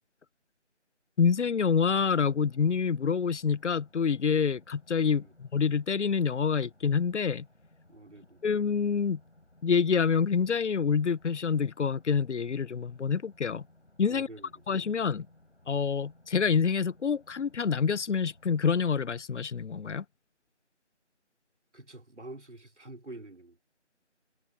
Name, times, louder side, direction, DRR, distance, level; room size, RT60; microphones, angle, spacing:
voice 1, 1.2-7.5 8.4-9.2 9.6-13.6 14.0-14.3 14.7-15.3 15.7-20.0, left 6 dB, 80° left, 0.5 m, -27 dB
sound 1, 1.9-18.8, left 1 dB, 60° left, 6.9 m, -61 dB
voice 2, 7.9-8.4 14.1-14.5 21.7-23.6, right 2 dB, 75° right, 2.9 m, -47 dB
figure-of-eight pair, 175°, 35 cm